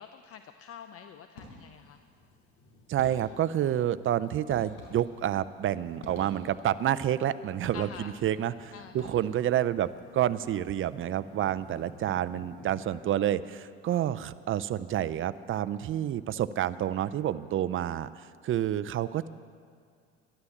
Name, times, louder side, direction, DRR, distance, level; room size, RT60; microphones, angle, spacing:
voice 1, 0.0-2.0 7.7-8.1 8.7-9.2, left 8 dB, 45° left, 9 dB, 0.7 m, -47 dB
sound 1, 1.3-1.9 3.0-3.5 4.5-5.4 6.0-6.8 7.6-8.3 8.9-9.5, left 2 dB, 85° left, 4.3 m, -48 dB
sound 2, 1.7-12.8, left 2 dB, 60° left, 2.6 m, -56 dB
voice 2, 2.9-18.1 18.4-19.3, right 11 dB, 40° right, 15 dB, 0.6 m, -29 dB
13.0 x 11.5 x 7.2 m, 2.2 s
hypercardioid pair, 70°, 33 cm